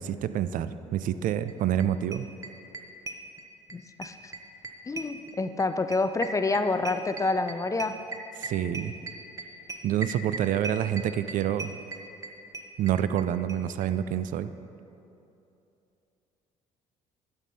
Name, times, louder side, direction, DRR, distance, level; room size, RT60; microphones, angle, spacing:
voice 1, 0.0-2.3 8.4-8.9 9.8-11.8 12.8-14.5, right 10 dB, 55° right, 13 dB, 0.4 m, -27 dB
sound 1, 1.5-1.6 1.8-3.8 4.0-13.2 13.5-13.6 13.8-13.9 14.1-14.2, right 3 dB, 20° right, 0.8 m, -37 dB
voice 2, 3.7-4.3 4.9-8.0, left 3 dB, 20° left, 9 dB, 0.4 m, -28 dB
10.5 x 5.4 x 4.1 m, 2.8 s
supercardioid pair, 65°, 16 cm